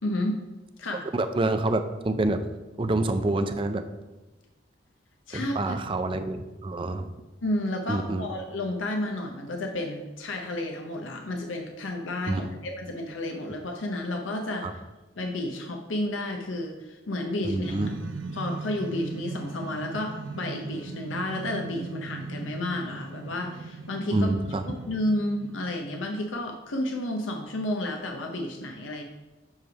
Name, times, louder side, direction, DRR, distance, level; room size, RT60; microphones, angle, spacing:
voice 1, 0.0-0.4 0.8-1.1 5.3-5.8 7.4-14.7 15.2-17.9 18.3-24.3 24.9-29.0, left 1 dB, 80° left, 2 dB, 0.7 m, -31 dB
voice 2, 1.1-2.4 2.8-3.8 5.3-7.1 7.9-8.3 12.3-12.5 14.6-14.7 17.4-17.9 24.1-24.6, right 2 dB, 25° right, 8 dB, 0.4 m, -27 dB
sound 1, 17.6-26.1, right 3 dB, 75° right, 0.6 m, -39 dB
7.2 x 3.3 x 5.8 m, 1.1 s
head